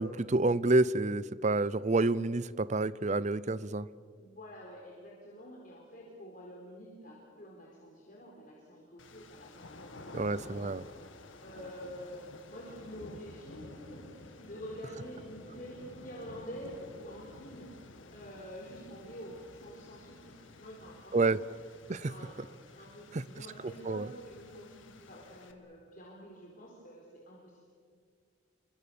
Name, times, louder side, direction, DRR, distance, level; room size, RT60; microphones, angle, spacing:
voice 1, 0.0-3.9 10.1-10.8 21.1-21.4 21.9-22.1 23.1-23.2 23.9-24.1, right 2 dB, 35° right, 18 dB, 0.6 m, -28 dB
voice 2, 4.2-10.7 11.4-17.7 18.1-21.4 22.0-27.7, equal, 45° left, -3 dB, 4.5 m, -48 dB
sound 1, 9.0-25.5, left 2 dB, 80° left, 1.9 m, -52 dB
29.5 x 24.5 x 7.1 m, 2.1 s
head